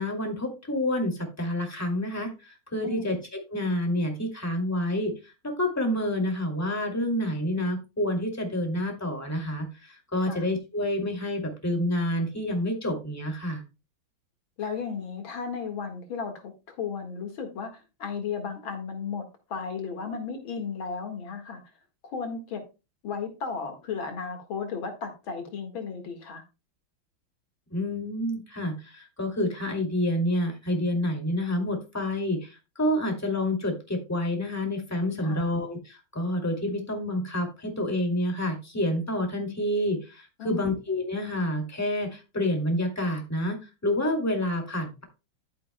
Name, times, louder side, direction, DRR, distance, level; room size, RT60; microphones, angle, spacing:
voice 1, 0.0-3.2 3.5-13.6 27.7-43.6 43.8-45.0, left 1 dB, 10° left, 2 dB, 2.3 m, -28 dB
voice 2, 14.6-21.6 22.1-22.6 23.0-26.4 35.2-35.5 40.4-40.7, left 5 dB, 75° left, 5 dB, 2.5 m, -34 dB
11.5 x 9.3 x 2.2 m, 0.28 s
omnidirectional pair, 2.2 m